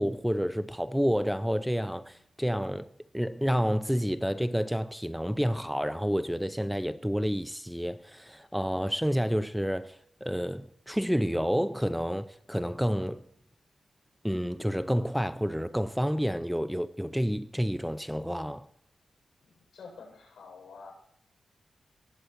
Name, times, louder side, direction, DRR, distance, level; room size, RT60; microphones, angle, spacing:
voice 1, 0.0-2.9 3.1-13.2 14.2-18.7, equal, ahead, 0.5 m, -29 dB
voice 2, 19.4-20.9, left 5 dB, 75° left, 7.1 m, -48 dB
18.5 x 8.1 x 4.5 m
wide cardioid pair, 115°, 0 cm